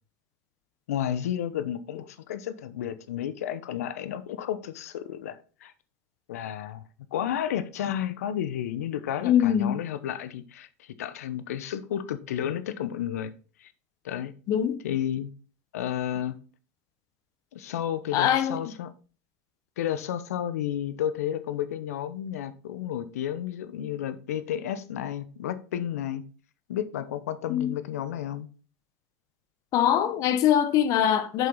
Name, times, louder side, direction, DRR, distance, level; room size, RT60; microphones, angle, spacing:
voice 1, 0.9-5.7 6.3-6.8 7.1-13.3 13.6-13.7 14.0-14.3 14.8-15.3 15.7-16.4 17.5-18.9 19.8-26.2 26.7-28.5, left 10 dB, 75° left, 0.8 m, -32 dB
voice 2, 9.2-9.8 14.5-14.8 18.1-18.6 27.5-27.7 29.7-31.5, left 10 dB, 45° left, 1.0 m, -23 dB
7.4 x 5.7 x 4.0 m
hypercardioid pair, 110°, 8 cm